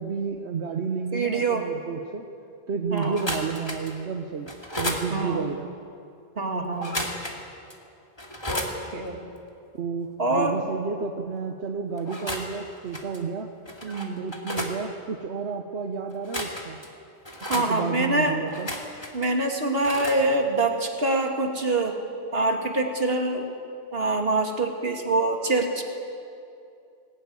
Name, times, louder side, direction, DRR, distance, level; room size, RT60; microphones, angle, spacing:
voice 1, 0.0-2.3 2.7-5.7 9.7-13.5 14.2-16.8 17.5-18.7, right 5 dB, 80° right, 4 dB, 1.3 m, -31 dB
voice 2, 1.1-1.7 2.9-3.2 5.1-5.4 6.4-7.0 8.5-8.7 8.9-9.2 10.2-10.6 13.8-14.2 17.5-18.4 19.1-22.0 22.3-23.5 23.9-25.8, right 2 dB, 65° right, 2 dB, 2.5 m, -25 dB
sound 1, 3.0-4.0 4.5-5.1 6.8-7.4 7.7-7.8 8.2-8.7 12.0-12.6 12.9-13.2 13.7-14.8 16.1-16.9 17.3-17.7 18.4-19.3 19.8-20.2, left 1 dB, 25° left, 2.4 m, -33 dB
19.5 x 19.0 x 9.4 m, 2.5 s
omnidirectional pair, 1.1 m